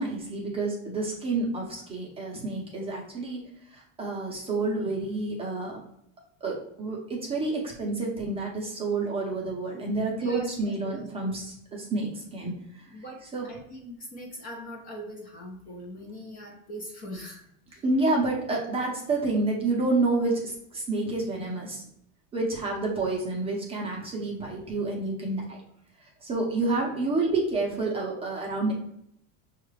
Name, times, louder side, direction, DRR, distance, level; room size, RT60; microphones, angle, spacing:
voice 1, 0.0-5.8 6.4-12.9 13.3-13.5 17.8-21.8 22.3-25.6 26.2-28.7, right 2 dB, 15° right, -2 dB, 0.7 m, -29 dB
voice 2, 10.2-11.3 12.9-17.4 17.7-17.8, equal, 25° left, 0 dB, 0.6 m, -41 dB
5.7 x 2.4 x 3.2 m, 0.73 s
cardioid pair, 160°, 35 cm